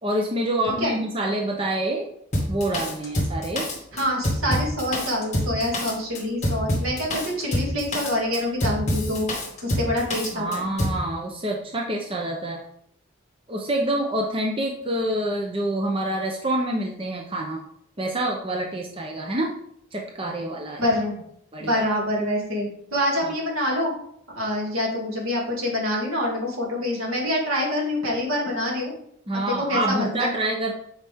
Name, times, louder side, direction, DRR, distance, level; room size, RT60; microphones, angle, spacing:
voice 1, 0.0-2.0 2.5-3.7 10.3-12.6 13.5-17.6 18.0-19.5 19.9-20.8 21.5-21.8 23.2-23.3 29.3-30.7, right 1 dB, 25° right, 0 dB, 0.7 m, -27 dB
Drum kit, 2.3-11.0, left 1 dB, 35° left, 2.2 m, -26 dB
voice 2, 3.9-9.3 9.6-10.7 20.8-21.1 21.7-23.9 24.3-28.9 29.3-30.3, left 1 dB, 80° right, -2 dB, 2.5 m, -26 dB
8.4 x 4.9 x 3.6 m, 0.69 s
head